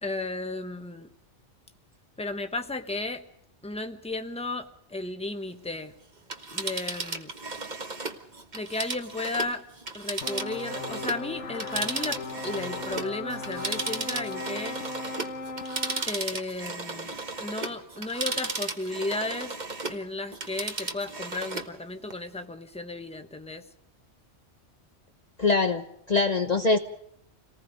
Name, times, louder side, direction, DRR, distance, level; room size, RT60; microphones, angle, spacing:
voice 1, 0.0-1.1 2.2-3.2 3.6-5.9 6.5-7.3 8.5-9.6 9.9-14.8 16.1-19.6 19.9-23.6, left 2 dB, 5° left, 6 dB, 1.2 m, -34 dB
Telephone, 6.2-11.2 11.5-20.0 20.3-21.7 22.1-22.2, right 3 dB, 40° right, 1.5 m, -35 dB
sound 1, 10.2-16.0, left 3 dB, 90° left, 1.8 m, -37 dB
voice 2, 25.4-26.8, left 3 dB, 40° left, 5 dB, 1.0 m, -23 dB
28.5 x 19.0 x 5.1 m, 0.73 s
omnidirectional pair, 1.2 m